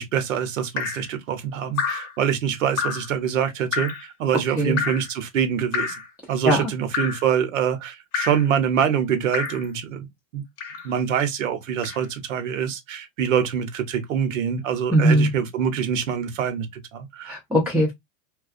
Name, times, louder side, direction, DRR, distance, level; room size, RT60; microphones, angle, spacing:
voice 1, 0.0-3.9 4.2-5.9 6.3-10.1 10.3-10.4 10.8-17.4, right 8 dB, 85° right, 0.9 m, -25 dB
Drip, 0.8-1.1 1.8-2.1 2.8-3.1 3.7-4.0 4.8-5.1 5.7-6.1 6.9-7.3 8.1-8.5 9.3-9.7 10.6-10.9 11.8-12.0, left 6 dB, 40° left, 0.7 m, -28 dB
voice 2, 4.6-4.9 6.4-6.7 14.9-15.3 17.3-17.9, right 1 dB, 5° right, 0.3 m, -20 dB
2.4 x 2.2 x 2.4 m
supercardioid pair, 125°, 38 cm